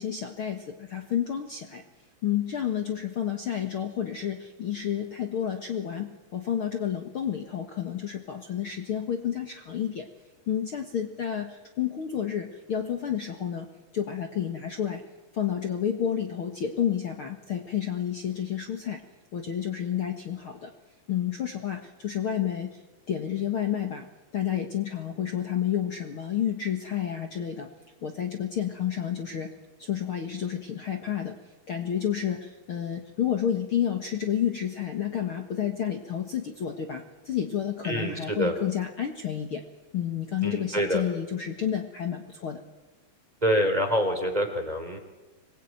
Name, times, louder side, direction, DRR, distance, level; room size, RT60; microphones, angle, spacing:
voice 1, 0.0-1.8 2.2-10.1 10.5-13.7 13.9-15.0 15.3-19.0 19.3-20.7 21.1-22.8 23.1-24.1 24.3-27.7 28.0-29.5 29.8-31.4 31.7-39.6 39.9-42.6, left 9 dB, 50° left, 4 dB, 2.1 m, -30 dB
voice 2, 37.8-38.5 40.4-41.0 43.4-45.0, equal, 10° right, 5 dB, 3.3 m, -26 dB
26.0 x 21.0 x 9.2 m, 1.1 s
omnidirectional pair, 3.7 m